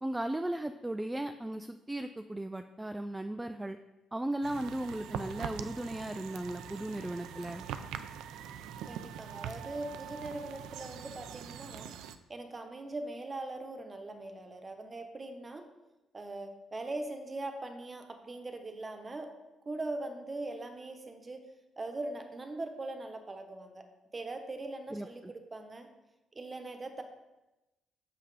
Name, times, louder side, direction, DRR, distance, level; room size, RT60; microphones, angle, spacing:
voice 1, 0.0-3.8 4.1-7.6 24.9-25.3, right 1 dB, 10° right, 8 dB, 0.4 m, -36 dB
sound 1, 4.4-12.2, right 8 dB, 90° right, 0.4 m, -43 dB
voice 2, 8.9-12.0 12.3-15.7 16.1-19.3 19.7-21.4 21.8-23.8 24.1-25.9 26.3-27.0, right 2 dB, 30° right, 6 dB, 1.0 m, -41 dB
6.7 x 5.7 x 4.9 m, 1.0 s
cardioid pair, 90°, 0 cm